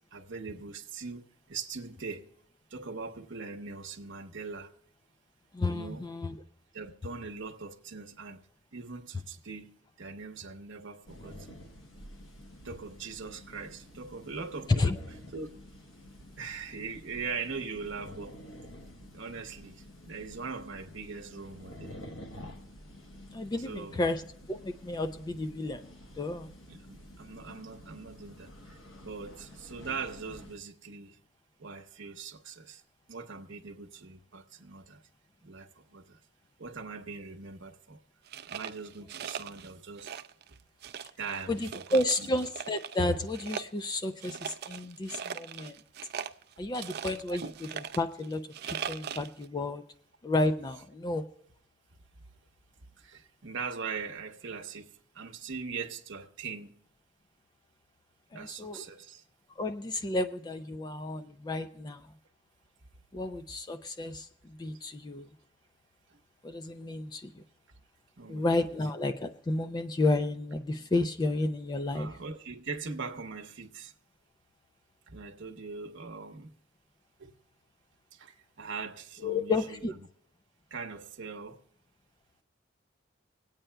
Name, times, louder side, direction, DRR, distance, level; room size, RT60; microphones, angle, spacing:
voice 1, 0.1-2.3 2.7-4.7 5.7-6.1 6.7-8.5 8.7-11.6 12.6-14.7 15.3-15.5 16.4-18.4 19.0-21.9 23.6-24.0 26.7-31.2 31.6-32.8 33.1-35.0 35.4-36.2 36.6-38.0 38.5-40.1 41.2-42.3 46.6-46.7 53.0-56.7 58.3-59.2 66.1-66.2 68.2-68.5 71.9-73.9 75.1-76.5 77.2-77.3 78.1-79.8 80.7-81.6, right 4 dB, 70° right, 0.8 m, -41 dB
voice 2, 5.5-6.3 14.8-15.0 23.3-24.2 24.5-25.9 26.2-26.5 41.5-45.8 46.6-49.8 50.2-51.3 58.3-58.9 59.6-62.1 63.1-65.3 66.4-67.4 68.3-72.1 79.2-79.9, left 2 dB, 20° left, 0.3 m, -32 dB
sound 1, 11.1-30.6, left 1 dB, 90° left, 1.0 m, -50 dB
sound 2, 38.3-39.7 40.0-40.5 40.8-43.0 43.3-49.4, right 7 dB, 55° right, 0.4 m, -40 dB
25.5 x 8.8 x 2.2 m
head